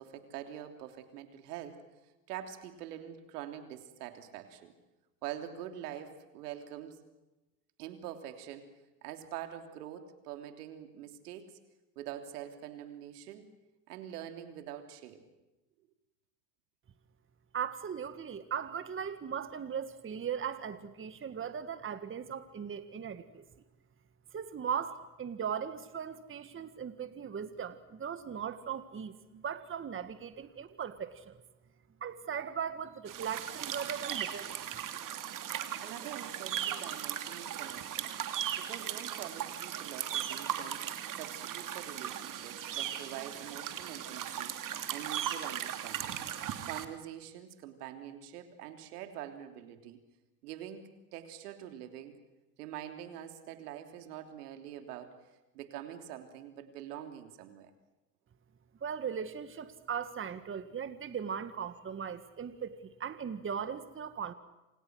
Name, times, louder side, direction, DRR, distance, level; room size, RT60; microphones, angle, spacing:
voice 1, 0.0-1.8 2.3-4.7 5.2-7.0 7.8-8.7 9.0-11.6 11.9-13.4 13.9-15.3 35.8-38.1 38.6-44.6 44.9-46.2 46.6-50.0 50.4-52.2 52.6-55.2 55.5-57.7, right 11 dB, 80° right, 6 dB, 3.4 m, -45 dB
voice 2, 17.5-23.5 24.3-31.4 32.0-34.6 58.8-64.3, right 7 dB, 25° right, 11 dB, 1.7 m, -38 dB
sound 1, 33.1-46.9, right 10 dB, 45° right, 2.9 m, -38 dB
28.0 x 27.5 x 6.4 m, 1.0 s
hypercardioid pair, 85°, 46 cm